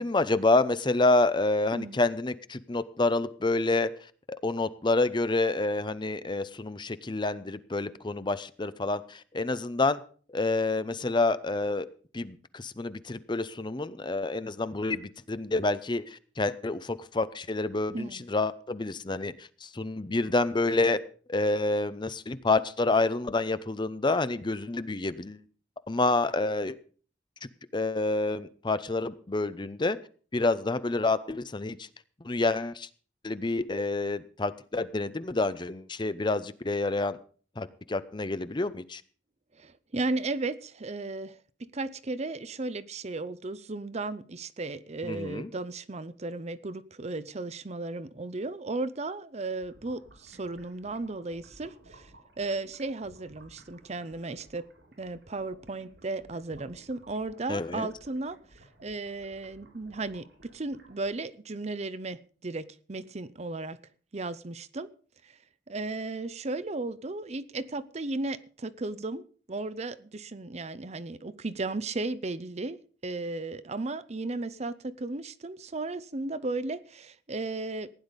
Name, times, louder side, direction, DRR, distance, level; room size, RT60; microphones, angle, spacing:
voice 1, 0.0-3.9 4.3-10.0 10.3-11.9 12.1-21.0 21.3-25.4 25.9-26.8 27.7-30.0 30.3-31.9 32.2-32.9 33.2-37.2 37.6-39.0 45.0-45.5 57.5-57.9, left 2 dB, 25° left, 0.7 m, -28 dB
voice 2, 17.9-18.2 39.5-41.4 41.7-52.1 52.4-54.7 55.0-58.4 58.8-63.8 64.1-64.9 65.2-65.4 65.7-72.8 73.0-77.9, right 2 dB, 40° right, 0.7 m, -35 dB
sound 1, 49.6-61.1, right 1 dB, 85° right, 5.0 m, -57 dB
16.0 x 10.0 x 5.2 m
head